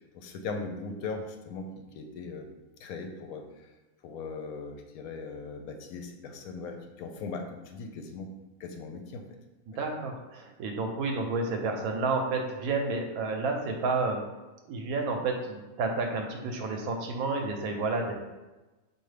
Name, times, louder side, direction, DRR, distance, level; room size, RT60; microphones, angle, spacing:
voice 1, 0.1-1.7 1.9-2.5 2.8-3.7 4.0-8.3 8.6-9.2, left 4 dB, 90° left, 4 dB, 1.1 m, -39 dB
voice 2, 9.8-14.2 14.7-18.1, right 3 dB, 90° right, 3 dB, 1.1 m, -30 dB
4.6 x 2.6 x 3.2 m, 1.1 s
omnidirectional pair, 1.5 m